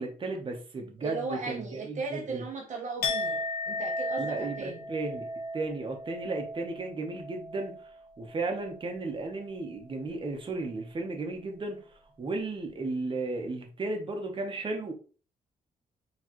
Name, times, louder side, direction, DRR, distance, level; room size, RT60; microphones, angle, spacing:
voice 1, 0.0-2.4 4.2-5.3 5.5-14.9, right 3 dB, 35° right, 1.0 m, -35 dB
voice 2, 1.0-4.9, right 4 dB, 55° right, 0.8 m, -37 dB
Chink clink, 3.0-9.0 9.3-9.7, left 2 dB, 85° left, 1.0 m, -36 dB
4.7 x 3.2 x 3.0 m
cardioid pair, 115°, 15 cm